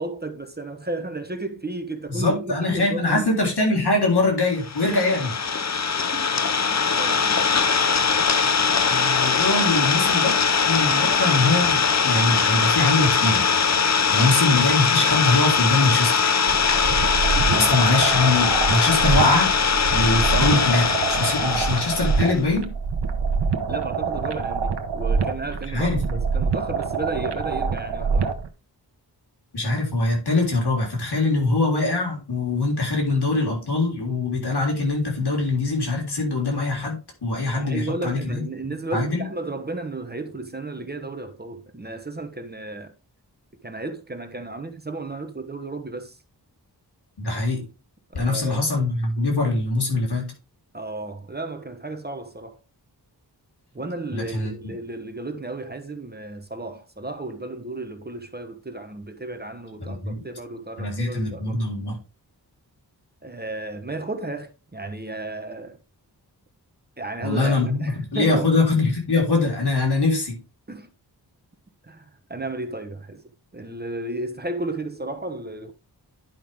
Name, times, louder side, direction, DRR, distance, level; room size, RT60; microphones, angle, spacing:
voice 1, 0.0-3.4 6.1-6.5 7.0-7.6 10.9-11.2 14.0-14.2 17.3-17.7 21.4-21.7 23.7-28.3 37.6-42.9 43.6-46.2 48.1-48.6 50.7-52.6 53.7-61.6 63.2-65.8 67.0-68.7 70.7-70.9 71.8-75.7, right 2 dB, 25° right, 1.0 m, -33 dB
voice 2, 2.1-5.4 8.9-11.8 12.0-13.5 14.1-16.3 17.6-19.5 19.9-22.7 25.7-26.2 29.5-39.2 47.2-47.7 48.1-50.3 54.1-54.7 59.8-60.2 60.8-62.0 67.2-70.4, left 2 dB, 70° left, 3.7 m, -23 dB
Idling, 4.6-22.4, left 6 dB, 40° left, 0.8 m, -21 dB
sound 1, 16.5-28.5, right 5 dB, 80° right, 1.1 m, -26 dB
10.5 x 5.5 x 3.6 m
wide cardioid pair, 80°, 41 cm